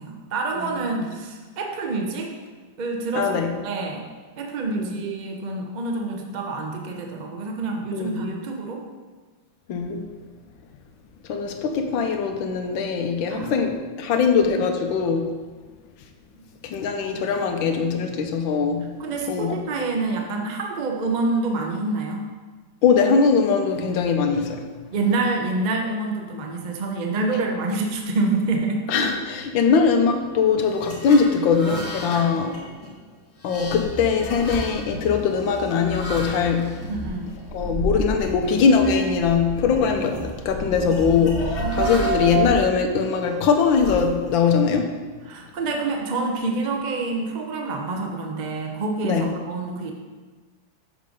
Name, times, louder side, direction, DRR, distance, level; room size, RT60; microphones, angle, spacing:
voice 1, 0.0-2.4 2.8-4.0 4.4-8.8 13.3-13.6 16.4-16.5 19.0-22.3 24.9-28.9 32.1-32.3 36.9-37.5 41.6-42.4 45.3-49.9, right 3 dB, 70° right, 2 dB, 0.4 m, -27 dB
voice 2, 0.5-1.1 3.1-3.5 4.7-5.0 7.9-8.3 9.7-10.1 11.2-15.3 16.6-18.9 19.3-19.6 22.8-24.7 28.9-32.6 33.4-36.7 37.5-45.0 49.0-49.3, left 5 dB, 85° left, 5 dB, 1.4 m, -21 dB
sound 1, 30.6-37.7 38.2-38.3 38.7-39.4 39.6-40.3 40.9-42.4 43.0-44.5, left 1 dB, 65° left, 2.1 m, -37 dB
sound 2, 33.5-42.5, right 2 dB, 20° right, 2.2 m, -31 dB
6.6 x 5.0 x 5.2 m, 1.4 s
omnidirectional pair, 2.1 m